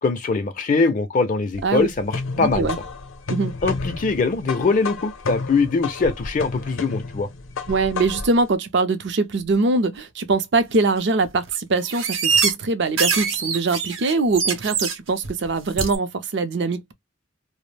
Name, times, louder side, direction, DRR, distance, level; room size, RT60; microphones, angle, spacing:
voice 1, 0.0-2.7 3.6-7.3, left 4 dB, 40° left, 0.4 m, -22 dB
sound 1, 1.5-8.4, left 4 dB, 85° left, 0.6 m, -31 dB
voice 2, 2.4-2.8 3.3-3.5 7.7-16.9, right 3 dB, 60° right, 0.5 m, -22 dB
sound 2, 10.7-10.8 11.2-11.6 11.9-12.5 12.9-14.9 15.2-15.5 15.8-16.0, right 6 dB, 90° right, 0.8 m, -23 dB
2.3 x 2.0 x 3.2 m
head